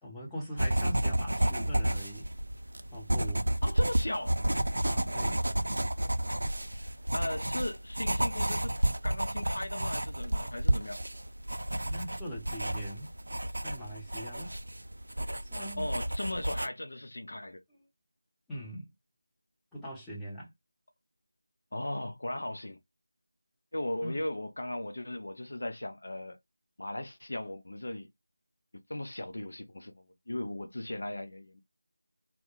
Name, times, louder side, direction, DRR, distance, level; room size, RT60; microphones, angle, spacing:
voice 1, 0.0-2.3 2.9-3.5 4.8-5.4 6.6-6.7 11.9-14.6 15.4-15.8 18.5-18.9 19.7-20.5 24.0-24.2, equal, 5° left, 0.7 m, -42 dB
sound 1, 0.6-16.7, right 1 dB, 75° right, 0.4 m, -31 dB
voice 2, 3.6-4.4 7.1-8.7 9.0-11.0 15.8-17.6 21.7-22.8 23.7-26.4 26.8-28.1 28.9-31.6, left 1 dB, 65° left, 0.5 m, -37 dB
2.2 x 2.1 x 2.9 m
figure-of-eight pair, 170°, 0 cm